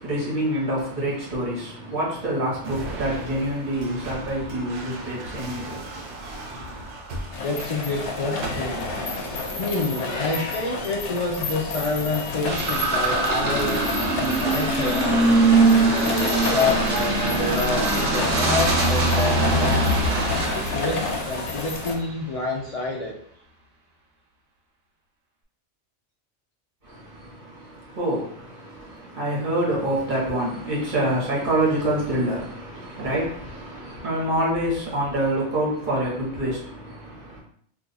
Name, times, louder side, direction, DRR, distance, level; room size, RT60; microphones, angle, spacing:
voice 1, 0.0-6.9 26.8-37.4, right 1 dB, 45° right, 1.2 m, -27 dB
sound 1, 2.6-12.0 12.7-13.2 14.3-15.0, right 2 dB, 90° right, 1.0 m, -38 dB
sound 2, 7.3-22.0, left 4 dB, 75° left, 0.9 m, -30 dB
voice 2, 7.4-8.9 9.6-15.5 15.8-20.0 20.5-23.1, left 2 dB, 60° left, 0.3 m, -28 dB
sound 3, 12.5-22.0, right 2 dB, 60° right, 0.9 m, -22 dB
2.6 x 2.3 x 3.9 m
omnidirectional pair, 1.2 m